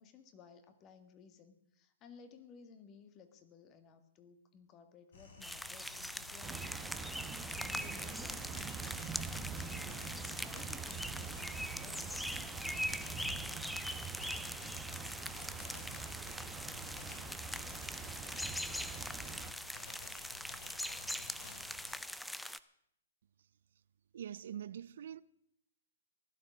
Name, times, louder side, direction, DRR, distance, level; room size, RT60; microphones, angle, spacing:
voice 1, 0.0-7.0 7.3-13.6, left 6 dB, 25° left, 1.8 m, -58 dB
sound 1, 5.1-21.9, left 3 dB, 70° left, 5.2 m, -54 dB
sound 2, 5.4-22.6, left 1 dB, ahead, 0.5 m, -42 dB
sound 3, 6.4-19.5, right 6 dB, 15° right, 1.0 m, -45 dB
voice 2, 24.1-25.2, right 9 dB, 65° right, 0.5 m, -44 dB
16.0 x 11.5 x 6.3 m
hypercardioid pair, 130°, 0 cm